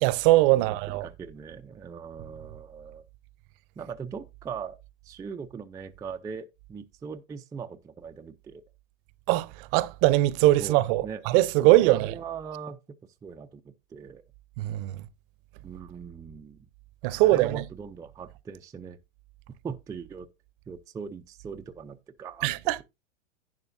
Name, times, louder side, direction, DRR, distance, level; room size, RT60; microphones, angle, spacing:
voice 1, 0.0-1.1 9.3-12.2 14.6-15.0 17.0-17.6 22.4-22.8, right 17 dB, 45° right, 0.8 m, -22 dB
voice 2, 0.5-3.0 3.8-4.8 5.0-8.6 10.6-11.3 11.6-12.8 13.2-14.2 15.6-16.6 17.1-19.0 19.6-20.3 20.7-22.5, right 6 dB, 10° right, 0.4 m, -40 dB
11.0 x 9.8 x 2.6 m
hypercardioid pair, 115°, 38 cm